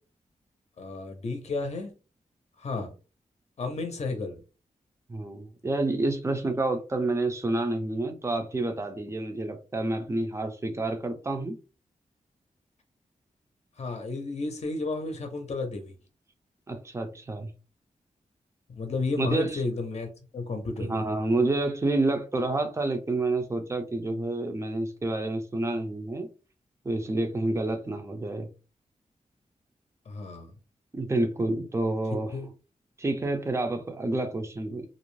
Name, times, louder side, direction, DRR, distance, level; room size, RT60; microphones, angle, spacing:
voice 1, 0.8-1.9 2.6-2.9 3.6-4.4 13.8-15.9 18.8-21.1 30.1-30.5 32.3-32.5, left 3 dB, 55° left, 0.6 m, -32 dB
voice 2, 5.1-11.6 16.7-17.5 19.2-19.6 20.9-26.3 26.8-28.5 30.9-32.3 33.0-34.9, right 2 dB, 20° right, 0.5 m, -29 dB
2.5 x 2.0 x 3.1 m
wide cardioid pair, 75°, 13 cm